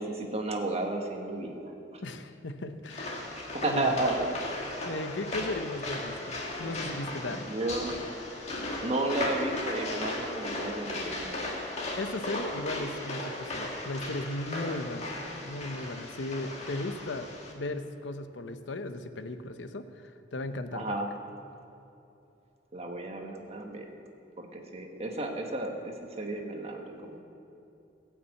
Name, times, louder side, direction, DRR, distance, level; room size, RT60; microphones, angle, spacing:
voice 1, 0.0-1.6 1.9-2.0 3.5-4.6 7.3-8.0 8.8-11.4 20.7-21.1 22.7-23.9 24.4-27.2, right 2 dB, 35° right, 2 dB, 1.4 m, -33 dB
voice 2, 2.0-3.3 3.6-4.0 4.8-7.4 11.9-15.1 15.4-17.3 17.5-21.0, left 2 dB, 90° left, 9 dB, 0.8 m, -36 dB
sound 1, 2.9-17.5, left 2 dB, 40° left, 1.8 m, -36 dB
sound 2, 4.4-11.9, equal, 15° left, 3.1 m, -51 dB
17.0 x 6.0 x 8.3 m, 2.8 s
head